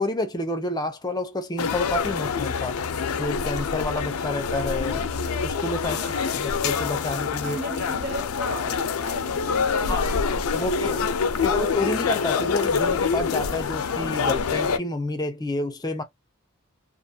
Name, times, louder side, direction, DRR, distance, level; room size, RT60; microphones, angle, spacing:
voice 1, 0.0-2.8 3.2-5.0 5.4-6.0 6.3-7.6 9.9-11.0 11.4-16.0, left 2 dB, 20° left, 0.4 m, -29 dB
sound 1, 1.6-14.8, left 5 dB, 85° left, 0.4 m, -26 dB
voice 2, 5.8-6.4 7.4-10.3 10.6-11.8, right 2 dB, 65° right, 0.7 m, -38 dB
2.4 x 2.3 x 2.7 m
head